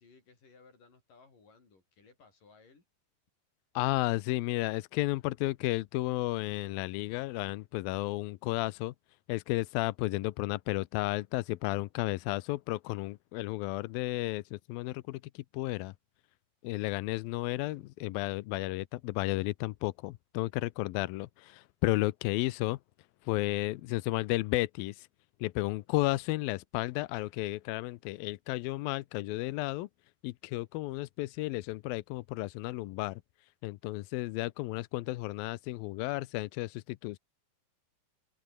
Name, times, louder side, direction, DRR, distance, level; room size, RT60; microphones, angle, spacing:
voice 1, 0.0-2.9, left 4 dB, 65° left, 7.7 m, -60 dB
voice 2, 3.8-8.9 9.3-15.9 16.6-22.8 23.3-25.1 25.4-29.9 30.2-33.2 33.6-37.2, left 19 dB, 85° left, 2.5 m, -33 dB
open air
omnidirectional pair, 4.2 m